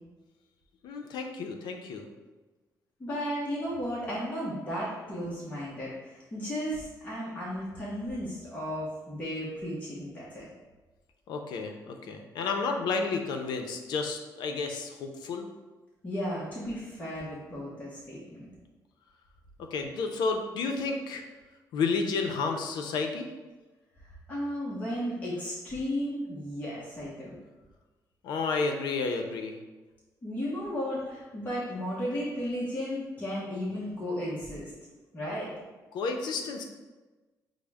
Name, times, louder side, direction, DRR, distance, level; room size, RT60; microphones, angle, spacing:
voice 1, 0.8-2.0 11.3-15.5 19.7-21.2 21.7-23.3 28.2-29.6 35.9-36.6, left 4 dB, 90° left, 4 dB, 0.5 m, -31 dB
voice 2, 3.0-10.4 16.0-18.5 24.3-27.4 30.2-34.7 35.1-35.5, equal, 20° left, -7 dB, 0.9 m, -34 dB
6.1 x 2.1 x 3.4 m, 1.2 s
cardioid pair, 145°, 7 cm